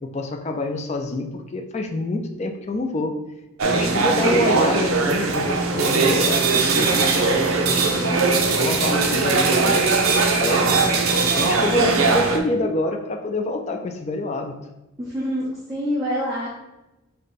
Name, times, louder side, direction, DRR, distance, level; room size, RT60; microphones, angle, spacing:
voice 1, 0.0-3.2 3.6-10.8 11.3-14.6, left 2 dB, 30° left, 4 dB, 0.3 m, -27 dB
sound 1, 3.6-12.4, right 4 dB, 70° right, 0.6 m, -20 dB
voice 2, 3.9-4.3 11.7-12.1 15.0-16.5, equal, 15° right, -9 dB, 0.9 m, -27 dB
5.1 x 2.2 x 4.0 m, 0.98 s
head